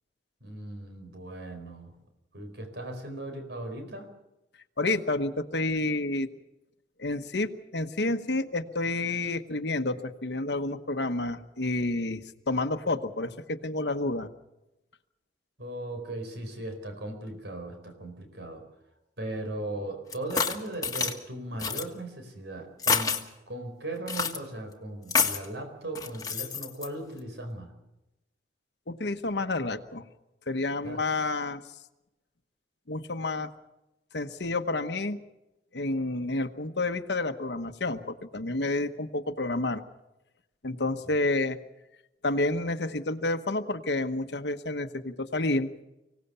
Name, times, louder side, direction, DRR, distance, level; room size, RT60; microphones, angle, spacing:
voice 1, 0.4-1.9 2.3-4.1 15.6-18.7 19.2-27.7 30.8-31.0 41.0-41.2, right 1 dB, 75° right, 5 dB, 4.6 m, -38 dB
voice 2, 4.8-6.3 7.0-14.3 28.9-30.0 30.5-31.6 32.9-33.5 34.1-35.2 35.7-39.8 40.6-41.6 42.2-45.7, left 2 dB, 75° left, 8 dB, 1.1 m, -29 dB
sound 1, 20.1-21.1 21.6-21.8 22.8-23.2 24.1-24.4 25.1-25.5 25.9-26.9, left 5 dB, 20° left, 1.6 m, -27 dB
25.0 x 17.5 x 6.9 m, 0.95 s
head